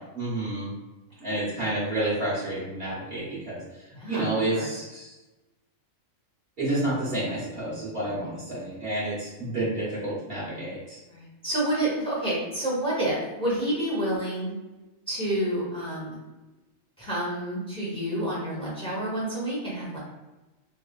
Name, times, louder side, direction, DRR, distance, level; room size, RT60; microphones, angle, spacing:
voice 1, 0.1-0.7 1.2-3.6 4.1-5.1 6.6-11.0, right 1 dB, 45° right, -10 dB, 1.6 m, -29 dB
voice 2, 3.9-4.7 8.1-8.2 11.1-14.5 15.1-16.1 17.0-20.0, right 1 dB, 5° left, -7 dB, 0.9 m, -29 dB
3.5 x 2.2 x 2.4 m, 1.1 s
omnidirectional pair, 1.4 m